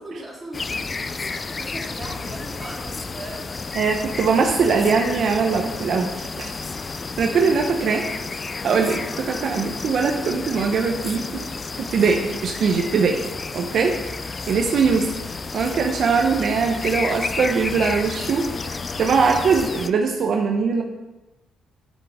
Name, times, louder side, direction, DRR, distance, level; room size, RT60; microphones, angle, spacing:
voice 1, 0.0-3.4, right 1 dB, 15° right, -5 dB, 3.2 m, -38 dB
sound 1, 0.5-19.9, left 4 dB, 30° left, 0.4 m, -31 dB
voice 2, 3.7-6.5 7.2-8.0 8.6-11.5 11.7-13.2 13.5-13.9 14.5-15.1 15.5-20.8, right 5 dB, 60° right, 2 dB, 0.8 m, -21 dB
8.4 x 7.4 x 3.6 m, 1.0 s
cardioid pair, 90°, 0 cm